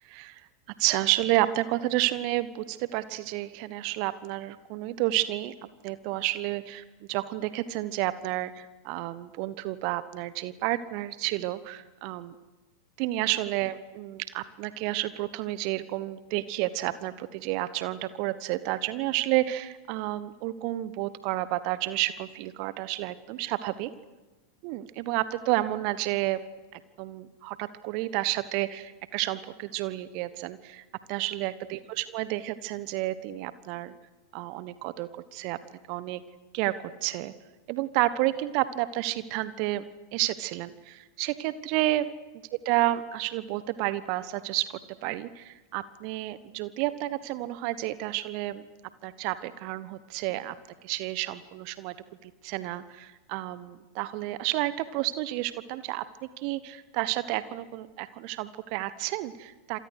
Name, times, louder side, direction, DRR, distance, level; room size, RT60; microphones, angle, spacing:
voice 1, 0.0-0.5 0.8-5.5 5.8-12.3 13.0-23.9 24.6-26.4 26.7-33.9 34.3-35.6 35.9-36.2 36.5-36.7 37.0-37.3 37.7-39.8 40.1-42.1 42.6-48.6 49.0-50.5 50.8-51.9 52.2-59.8, right 16 dB, 45° right, 15 dB, 1.2 m, -30 dB
29.0 x 27.0 x 6.6 m, 1.2 s
figure-of-eight pair, 90°, 0 cm